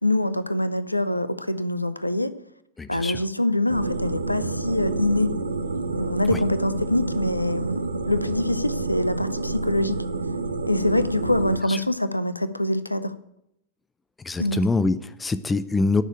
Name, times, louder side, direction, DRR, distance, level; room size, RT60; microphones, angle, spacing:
voice 1, 0.0-2.3 2.9-5.3 5.9-10.0 10.7-13.1 14.4-14.6, left 1 dB, 85° left, 0.7 m, -24 dB
voice 2, 2.8-3.2 6.3-6.4 11.7-11.8 14.2-16.0, left 3 dB, 15° left, 0.7 m, -24 dB
sound 1, 3.7-11.6, right 3 dB, 75° right, 0.9 m, -29 dB
11.0 x 6.5 x 8.8 m
figure-of-eight pair, 90°, 0 cm